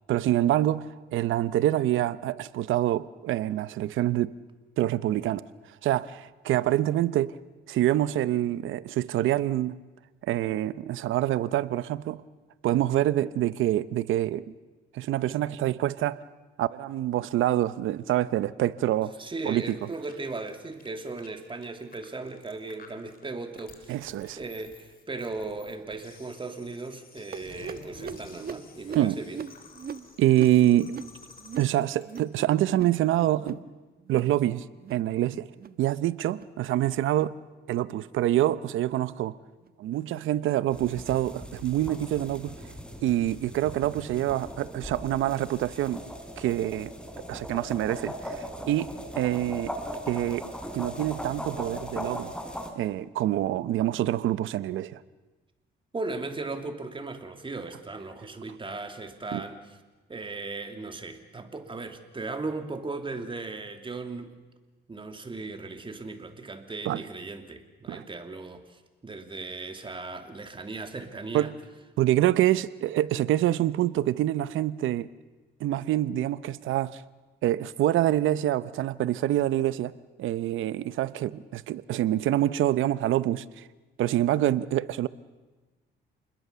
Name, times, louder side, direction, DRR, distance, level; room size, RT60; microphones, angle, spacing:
voice 1, 0.1-4.3 4.8-5.4 5.8-7.4 7.7-9.8 10.2-12.2 12.6-14.4 14.9-16.2 16.6-19.1 19.4-19.8 23.9-24.4 28.9-29.2 30.2-30.9 31.6-33.6 34.1-34.6 34.9-35.5 35.8-37.4 37.7-39.4 39.8-42.5 43.0-46.0 46.4-46.9 47.3-49.7 50.1-52.3 52.8-55.0 59.3-59.4 66.9-67.0 67.9-68.0 71.3-71.6 72.0-75.1 75.6-77.0 77.4-83.6 84.0-85.1, right 13 dB, 80° right, 16 dB, 0.8 m, -26 dB
voice 2, 19.2-24.0 24.4-29.4 55.9-59.6 60.1-64.4 64.9-71.5, right 3 dB, 25° right, 6 dB, 2.7 m, -37 dB
sound 1, 19.6-32.2, left 4 dB, 45° left, 4.0 m, -51 dB
sound 2, 27.3-32.4 32.6-33.0 33.3-33.7 34.0-34.4 34.7-35.1 35.5-35.8 36.3-36.6 37.1-37.3 37.9-38.1 38.7-38.9 39.6-39.7 40.5-40.6, right 7 dB, 50° right, 1.3 m, -41 dB
sound 3, 40.7-52.7, equal, 5° left, 3.7 m, -39 dB
28.0 x 21.0 x 6.9 m, 1.2 s
cardioid pair, 90°, 20 cm